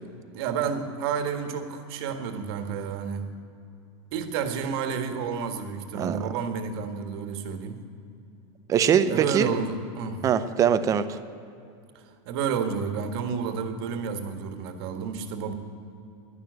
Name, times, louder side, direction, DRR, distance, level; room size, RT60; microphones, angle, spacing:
voice 1, 0.3-3.3 4.1-7.8 9.1-10.2 11.9-15.5, right 6 dB, 55° right, 6 dB, 1.6 m, -30 dB
voice 2, 5.9-6.3 8.7-9.6 10.2-11.2, right 8 dB, 20° right, 11 dB, 0.6 m, -22 dB
12.0 x 11.0 x 9.4 m, 2.6 s
supercardioid pair, 155°, 16 cm